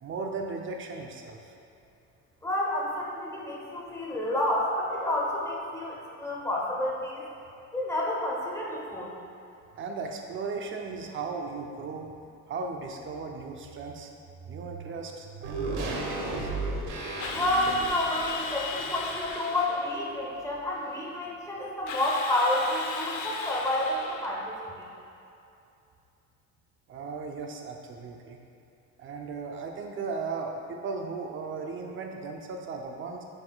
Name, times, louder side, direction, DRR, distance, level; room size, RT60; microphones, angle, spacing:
voice 1, 0.0-1.4 9.7-12.1 12.5-14.1 14.5-16.5 26.9-28.4 29.0-33.2, right 4 dB, 45° right, 2 dB, 0.7 m, -36 dB
voice 2, 2.4-7.3 7.7-9.1 17.3-24.6, left 1 dB, 10° left, -4 dB, 0.9 m, -29 dB
sound 1, 15.4-19.9 20.2-20.3, right 2 dB, 90° right, 1.1 m, -35 dB
Drill, 17.2-19.9 21.9-24.4, left 4 dB, 85° left, 0.7 m, -37 dB
7.8 x 5.7 x 2.3 m, 2.7 s
cardioid pair, 140°, 30 cm